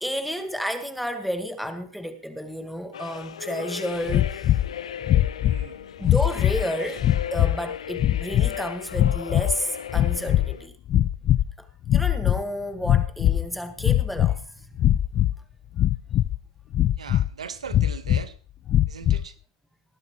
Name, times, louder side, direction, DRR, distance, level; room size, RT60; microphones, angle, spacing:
voice 1, 0.0-4.5 6.0-10.7 11.9-14.8, equal, ahead, 1.5 m, -31 dB
sound 1, 2.9-10.7, left 9 dB, 80° left, 0.9 m, -36 dB
sound 2, 4.1-4.7 5.0-5.7 6.0-6.6 7.0-7.6 8.0-8.5 8.9-9.6 9.9-10.6 10.9-11.5 11.8-12.4 12.8-13.5 13.8-14.4 14.8-15.3 15.8-16.4 16.7-17.3 17.7-18.2 18.7-19.3, left 12 dB, 30° left, 0.5 m, -21 dB
voice 2, 5.4-5.9 17.0-18.3 18.9-19.4, right 7 dB, 90° right, 1.3 m, -39 dB
19.5 x 11.5 x 3.1 m
hypercardioid pair, 120°, 3 cm